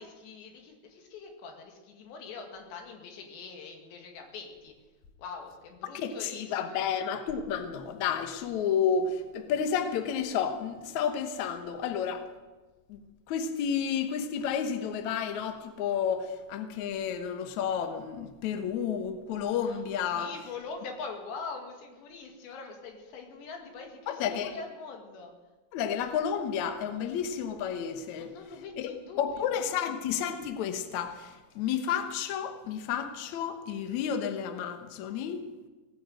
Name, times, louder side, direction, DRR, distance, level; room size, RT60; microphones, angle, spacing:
voice 1, 0.0-4.7 5.2-6.9 19.6-19.8 20.1-25.3 28.2-29.6, left 4 dB, 90° left, 2 dB, 4.2 m, -43 dB
voice 2, 5.9-12.3 12.9-13.0 13.3-20.3 24.1-24.5 25.7-28.3 28.8-28.9 29.2-35.4, left 7 dB, 70° left, 7 dB, 1.8 m, -31 dB
18.5 x 9.4 x 7.6 m, 1.2 s
omnidirectional pair, 4.8 m